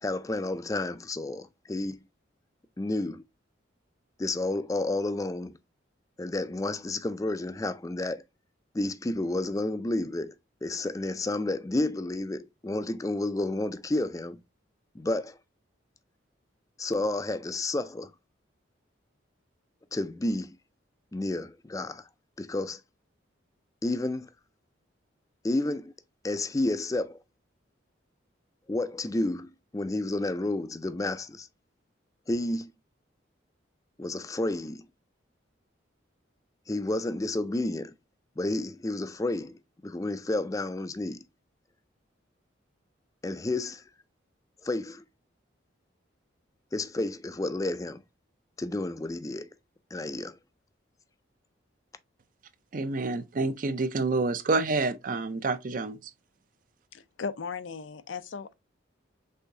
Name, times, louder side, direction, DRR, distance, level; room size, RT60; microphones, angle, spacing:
voice 1, 0.0-2.0 2.8-3.2 4.2-5.6 6.2-8.2 8.7-10.3 10.6-14.4 14.9-15.4 16.8-18.1 19.9-20.5 21.1-22.1 22.4-22.8 23.8-24.3 25.4-25.9 26.2-27.2 28.7-31.5 32.3-32.7 34.0-34.9 36.7-37.9 38.4-41.2 43.2-43.8 44.6-45.0 46.7-48.0 48.6-49.5 49.9-50.4, left 2 dB, 15° left, 0.4 m, -31 dB
voice 2, 52.7-56.0, right 3 dB, 45° right, 0.5 m, -28 dB
voice 3, 56.9-58.5, left 5 dB, 80° left, 0.5 m, -37 dB
5.5 x 3.5 x 2.7 m
head